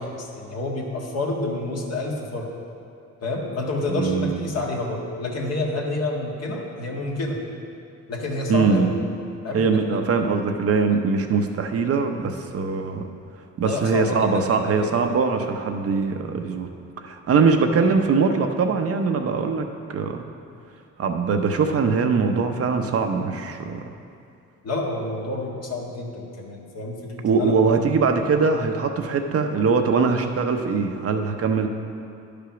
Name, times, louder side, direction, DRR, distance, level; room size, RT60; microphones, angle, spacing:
voice 1, 0.0-2.5 3.2-7.4 8.1-9.0 9.4-10.0 13.6-14.9 24.6-27.6, left 2 dB, 55° left, -1 dB, 1.6 m, -29 dB
voice 2, 3.9-4.4 8.5-8.9 9.5-13.1 13.6-16.7 17.0-20.2 21.0-23.8 27.2-31.7, right 5 dB, 50° right, 5 dB, 0.8 m, -22 dB
10.5 x 5.1 x 5.8 m, 2.5 s
cardioid pair, 90°, 30 cm